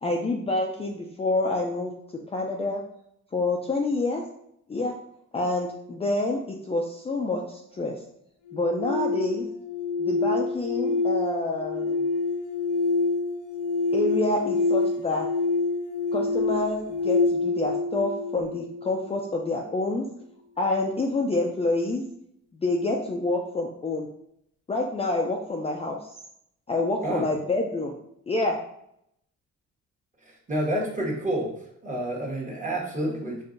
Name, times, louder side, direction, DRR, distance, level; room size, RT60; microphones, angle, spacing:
voice 1, 0.0-1.9 2.3-2.8 3.3-4.2 4.7-4.9 5.3-7.9 8.5-9.5 10.0-12.1 13.9-15.3 16.1-20.0 20.6-22.0 22.6-24.1 24.7-26.0 26.7-27.9 28.3-28.6, left 2 dB, 20° left, 0 dB, 0.4 m, -27 dB
sound 1, 8.5-19.5, left 3 dB, 90° left, 0.5 m, -27 dB
voice 2, 30.5-31.5 31.8-33.4, right 1 dB, 25° right, -3 dB, 1.2 m, -28 dB
4.4 x 2.3 x 2.5 m, 0.73 s
cardioid pair, 90°, 30 cm